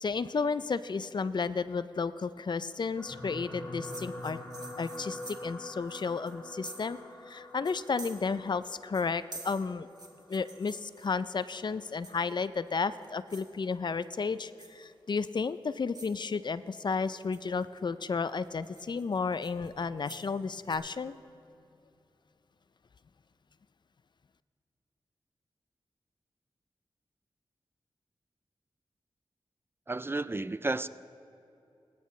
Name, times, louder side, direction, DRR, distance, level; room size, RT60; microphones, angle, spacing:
voice 1, 0.0-4.4 4.8-7.0 7.3-9.9 10.3-21.1, left 5 dB, 50° left, 14 dB, 0.4 m, -32 dB
sound 1, 3.0-11.4 12.2-12.4 12.7-12.8, left 1 dB, 15° left, 2.0 m, -45 dB
sound 2, 3.8-7.0 7.3-7.4 7.6-8.7 8.9-11.4 12.0-12.5 12.9-13.5 13.9-14.2 14.6-14.8 15.5-15.6 15.9-16.2 16.9-17.8 18.3-20.3 20.7-20.8, right 2 dB, 45° right, 1.7 m, -48 dB
voice 2, 29.9-30.9, right 2 dB, 25° right, 15 dB, 0.3 m, -32 dB
21.0 x 10.0 x 3.2 m, 2.7 s
cardioid pair, 50°, 10 cm